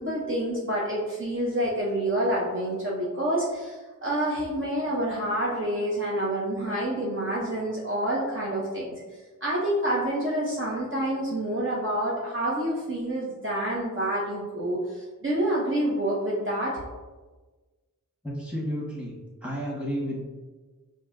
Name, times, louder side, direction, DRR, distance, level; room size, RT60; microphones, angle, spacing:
voice 1, 0.0-9.0 9.4-16.8, right 1 dB, 40° right, -6 dB, 0.7 m, -28 dB
voice 2, 18.2-19.1 19.4-20.2, equal, 5° right, -5 dB, 1.3 m, -31 dB
5.2 x 2.6 x 2.5 m, 1.3 s
wide cardioid pair, 45°, 33 cm